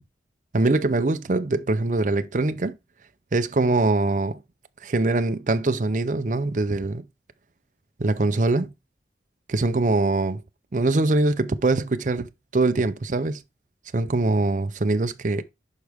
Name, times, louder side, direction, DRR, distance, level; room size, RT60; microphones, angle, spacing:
voice 1, 0.5-2.8 3.3-4.4 4.8-7.0 8.0-8.7 9.5-10.4 10.7-13.4 13.9-15.4, right 2 dB, 45° right, 0.5 m, -23 dB
11.0 x 4.7 x 3.5 m
head